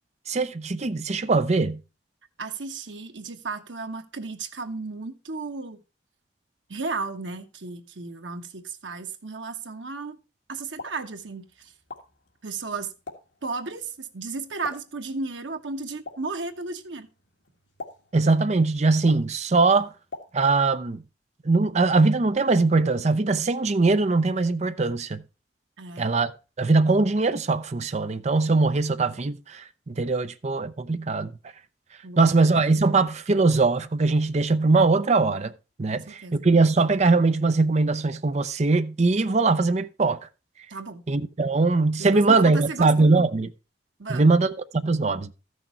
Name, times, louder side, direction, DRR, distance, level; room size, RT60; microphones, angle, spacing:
voice 1, 0.3-1.8 18.1-19.9 20.3-21.0 21.4-25.2 26.0-26.3 26.6-31.3 32.2-35.5 35.8-36.0 36.3-40.2 41.1-43.5 44.1-45.3, right 3 dB, 40° right, 0.5 m, -21 dB
voice 2, 2.4-5.8 6.7-10.2 10.5-11.7 12.4-12.9 13.4-17.1 25.8-26.1 32.0-32.5 35.9-36.4 40.7-41.0 42.0-43.1 44.0-44.4, right 4 dB, 90° right, 1.1 m, -34 dB
Explosion, 10.5-20.8, left 3 dB, 75° left, 1.8 m, -47 dB
13.5 x 6.3 x 4.4 m
head